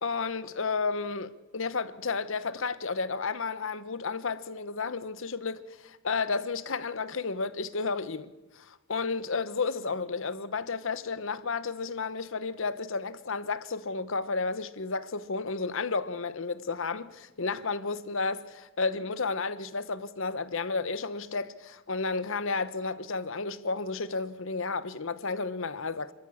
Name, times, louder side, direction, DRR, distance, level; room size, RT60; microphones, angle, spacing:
voice 1, 0.0-26.1, left 4 dB, 70° left, 1.0 m, -32 dB
29.5 x 13.5 x 7.2 m
head